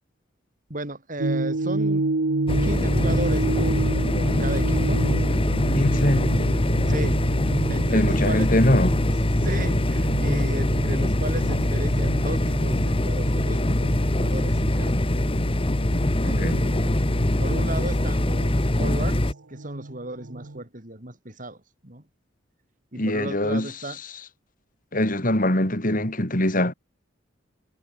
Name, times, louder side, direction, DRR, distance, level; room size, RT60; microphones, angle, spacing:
voice 1, 0.7-2.0 2.6-5.0 6.9-7.2 7.7-8.6 9.4-15.3 16.2-17.1 17.4-19.2 19.5-22.0 22.9-24.0, right 1 dB, 40° right, 4.4 m, -35 dB
sound 1, 1.2-20.6, right 2 dB, 80° right, 1.2 m, -31 dB
sound 2, 2.5-19.3, left 1 dB, 30° left, 1.3 m, -23 dB
voice 2, 5.7-6.3 7.9-8.9 16.2-16.6 23.0-23.7 24.9-26.7, left 1 dB, 45° left, 4.4 m, -22 dB
head